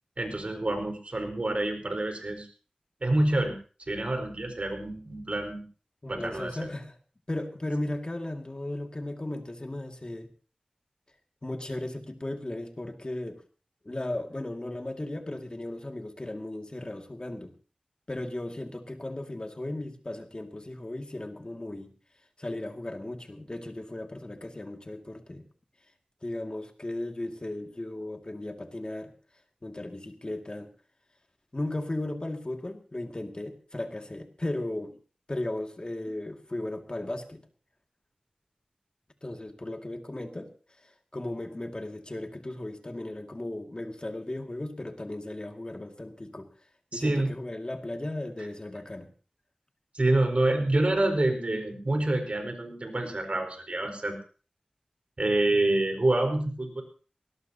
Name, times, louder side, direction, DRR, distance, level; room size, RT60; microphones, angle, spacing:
voice 1, 0.2-2.5 3.0-3.6 3.9-5.6 6.1-6.6 46.9-47.3 49.9-54.2 55.2-56.8, right 2 dB, 60° right, 4 dB, 4.6 m, -27 dB
voice 2, 6.0-7.0 7.3-10.3 11.4-13.4 13.8-17.5 18.1-21.9 22.4-25.5 26.2-29.1 29.6-30.7 31.5-35.0 35.3-37.5 39.2-40.5 41.1-46.5 46.9-49.1, left 1 dB, 40° left, 4 dB, 2.4 m, -36 dB
20.0 x 18.5 x 2.9 m, 0.37 s
wide cardioid pair, 45°, 2 cm